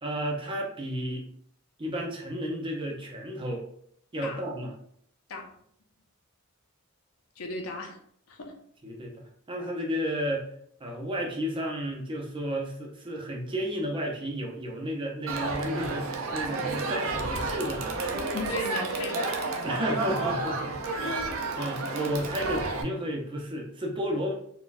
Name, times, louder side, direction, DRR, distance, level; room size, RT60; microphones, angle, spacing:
voice 1, 0.0-1.2 1.8-3.6 4.1-4.7 8.8-10.5 10.8-17.9 19.6-21.2 21.6-24.3, equal, 25° right, 0 dB, 0.6 m, -32 dB
voice 2, 7.4-8.0 8.3-8.6 18.3-19.6 21.0-21.4, left 3 dB, 90° left, 2 dB, 0.6 m, -36 dB
Crowd, 15.3-22.8, right 3 dB, 70° right, 0.5 m, -31 dB
3.9 x 2.2 x 2.5 m, 0.65 s
head